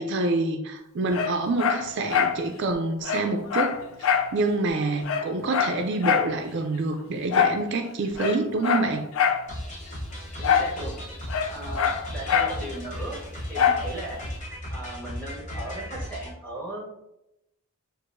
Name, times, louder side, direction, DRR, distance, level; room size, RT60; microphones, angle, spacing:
voice 1, 0.0-9.1, right 2 dB, 55° right, 5 dB, 0.4 m, -27 dB
Dog, 1.1-2.4 2.7-2.8 3.0-4.3 4.7-4.8 5.0-6.3 7.3-7.6 8.1-9.5 10.4-10.8 11.0-12.6 13.6-13.9 14.4-14.5, left 7 dB, 70° left, 0.4 m, -24 dB
sound 1, 9.5-16.3, equal, 35° left, 0.9 m, -36 dB
voice 2, 10.4-10.9 11.5-13.2 13.5-14.2 14.7-16.9, right 1 dB, 5° left, -5 dB, 1.3 m, -37 dB
6.3 x 2.5 x 2.5 m, 0.86 s
head